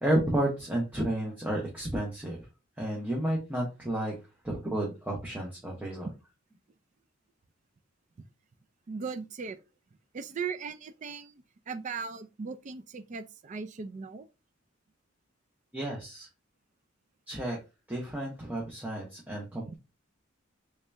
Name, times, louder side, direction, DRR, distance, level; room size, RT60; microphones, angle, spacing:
voice 1, 0.0-2.4 2.8-4.2 4.4-6.1 15.7-16.3 17.3-17.6 17.9-19.8, right 1 dB, 10° right, 0.8 m, -31 dB
voice 2, 8.9-9.6 10.1-14.3 19.6-19.7, right 5 dB, 35° right, 0.3 m, -38 dB
3.2 x 2.8 x 3.4 m
head